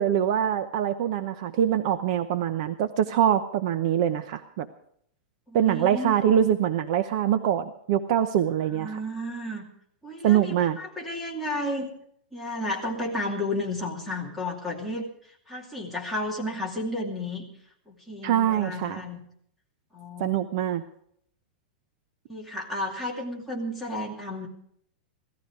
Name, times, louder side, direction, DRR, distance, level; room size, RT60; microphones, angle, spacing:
voice 1, 0.0-4.7 5.5-9.0 10.2-10.8 18.2-19.0 20.2-20.8, right 10 dB, 40° right, 10 dB, 0.8 m, -24 dB
voice 2, 5.5-6.2 8.7-9.7 10.0-11.9 12.3-15.1 15.5-17.4 17.9-19.2 19.9-20.4 22.3-24.5, left 1 dB, ahead, -2 dB, 2.6 m, -32 dB
17.0 x 14.0 x 4.8 m, 0.68 s
supercardioid pair, 175°, 5 cm